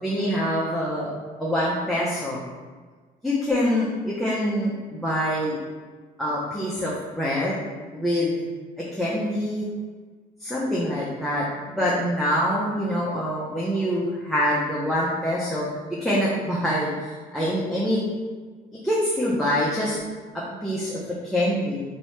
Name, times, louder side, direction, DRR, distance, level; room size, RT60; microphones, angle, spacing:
voice 1, 0.0-1.1 1.4-2.4 3.2-5.6 6.2-7.6 7.9-8.4 8.8-9.7 10.4-18.0 18.8-20.0 20.3-21.8, equal, ahead, -7 dB, 0.5 m, -25 dB
2.9 x 2.7 x 3.2 m, 1.4 s
cardioid pair, 110°, 17 cm